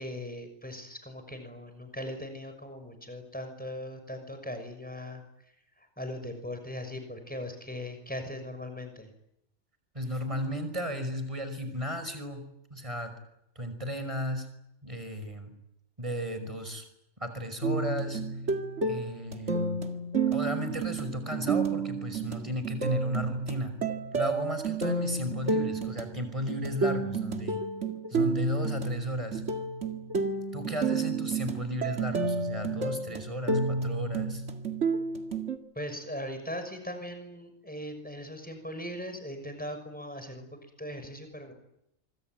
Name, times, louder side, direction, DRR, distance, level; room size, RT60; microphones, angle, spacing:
voice 1, 0.0-5.2 6.0-9.1 35.8-40.5 40.8-41.5, left 1 dB, 5° left, 7 dB, 6.1 m, -39 dB
voice 2, 9.9-12.4 12.7-13.1 13.6-14.5 14.8-15.5 16.0-16.8 17.2-18.2 18.8-19.8 20.3-23.7 24.1-27.6 28.1-29.4 30.5-34.4, equal, 25° right, 8 dB, 5.8 m, -35 dB
sound 1, 17.6-35.6, right 3 dB, 60° right, 2.4 m, -30 dB
25.5 x 25.0 x 9.2 m, 0.80 s
omnidirectional pair, 1.4 m